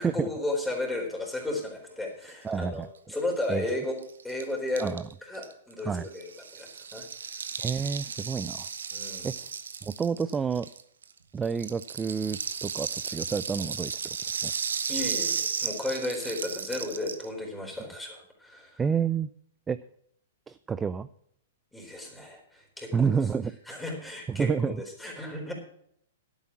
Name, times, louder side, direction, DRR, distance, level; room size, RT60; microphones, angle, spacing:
voice 1, 0.0-4.9 5.2-7.1 8.9-9.3 14.9-18.8 21.7-23.1 23.7-25.5, left 2 dB, 5° left, 0 dB, 4.1 m, -34 dB
voice 2, 2.4-2.9 3.5-3.7 4.8-5.0 5.9-6.0 7.6-8.7 9.2-9.3 9.8-10.7 11.3-14.0 14.4-14.5 18.8-19.3 19.7-19.8 20.5-21.1 22.9-23.6 24.3-24.8, right 6 dB, 15° right, 14 dB, 0.4 m, -29 dB
Rattle (instrument), 3.4-3.5 3.7-3.8 4.0-11.1 11.4-17.3, right 6 dB, 80° right, 1.1 m, -34 dB
11.0 x 8.8 x 6.0 m, 0.69 s
hypercardioid pair, 125°, 0 cm